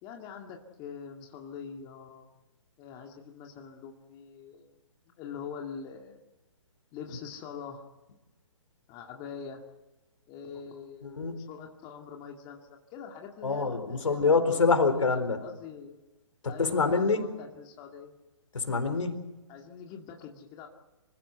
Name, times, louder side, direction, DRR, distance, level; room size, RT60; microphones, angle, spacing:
voice 1, 0.0-2.3 2.8-4.7 5.2-6.2 6.9-7.9 8.9-9.6 10.3-14.8 15.4-16.0 16.5-18.1 19.5-20.7, left 7 dB, 25° left, 2 dB, 2.2 m, -44 dB
voice 2, 11.0-11.3 13.4-15.4 16.4-17.2 18.5-19.3, left 4 dB, 75° left, 8 dB, 4.0 m, -26 dB
26.0 x 15.5 x 8.0 m, 1.1 s
figure-of-eight pair, 135°, 17 cm